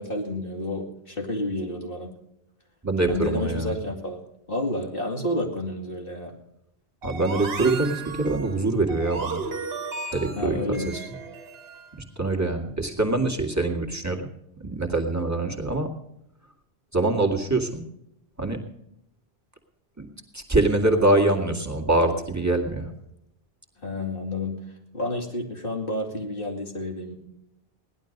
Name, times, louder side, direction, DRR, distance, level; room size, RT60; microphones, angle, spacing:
voice 1, 0.0-2.1 3.1-4.2 4.5-6.3 10.4-11.1 23.8-24.6 24.9-27.1, left 1 dB, 60° left, 1 dB, 2.8 m, -30 dB
voice 2, 2.8-3.7 7.0-9.4 10.1-10.6 10.9-11.0 11.9-14.3 14.6-15.9 16.9-17.8 18.4-18.6 20.0-20.1 20.3-22.9, right 2 dB, 15° right, 1 dB, 2.1 m, -24 dB
sound 1, 7.0-11.9, right 4 dB, 70° right, 1.5 m, -35 dB
17.5 x 11.5 x 5.3 m, 0.81 s
omnidirectional pair, 1.1 m